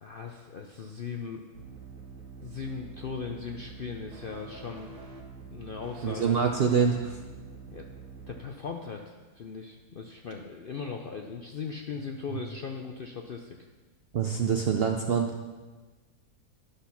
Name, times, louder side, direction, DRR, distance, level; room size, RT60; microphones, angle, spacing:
voice 1, 0.0-1.5 2.4-4.9 5.5-6.3 7.7-7.9 8.3-13.6, left 5 dB, 60° left, 3 dB, 0.5 m, -38 dB
sound 1, 1.5-8.4, right 4 dB, 85° right, 1.9 m, -45 dB
voice 2, 6.0-7.2 14.1-15.3, right 6 dB, 65° right, 3 dB, 0.6 m, -25 dB
11.5 x 6.0 x 5.8 m, 1.3 s
omnidirectional pair, 1.7 m